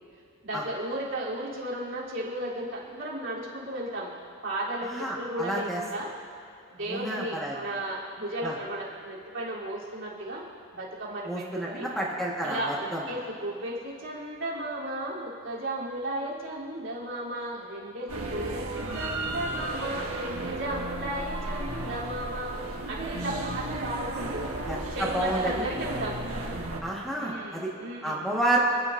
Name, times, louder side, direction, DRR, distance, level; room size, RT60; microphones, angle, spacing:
voice 1, 0.4-4.1 4.4-6.1 6.8-10.5 10.7-11.9 12.4-24.5 24.9-26.1 27.2-28.2, right 1 dB, 60° right, -6 dB, 3.2 m, -34 dB
voice 2, 4.9-5.8 6.9-7.6 8.4-8.5 11.2-13.0 24.7-25.6 26.8-27.7 28.0-28.6, right 1 dB, ahead, -5 dB, 1.4 m, -30 dB
sound 1, 18.1-26.8, right 2 dB, 85° right, 1.4 m, -34 dB
30.0 x 10.5 x 2.6 m, 2.5 s
head